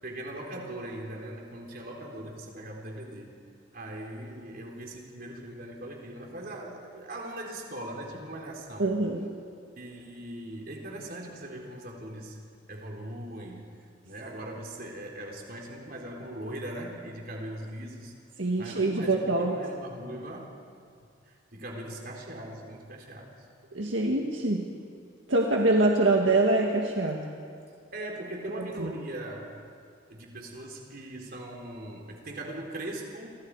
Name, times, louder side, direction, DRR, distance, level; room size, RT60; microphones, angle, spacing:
voice 1, 0.0-3.3 3.7-8.9 9.8-12.4 12.7-13.7 14.0-18.2 18.6-20.6 21.2-23.3 27.9-29.7 30.1-33.3, right 1 dB, 50° right, 0 dB, 3.9 m, -40 dB
voice 2, 8.8-9.3 18.4-19.6 23.7-24.7 25.3-27.2 28.8-28.9, right 2 dB, 75° right, 0 dB, 1.9 m, -24 dB
28.5 x 26.5 x 4.9 m, 2.3 s
head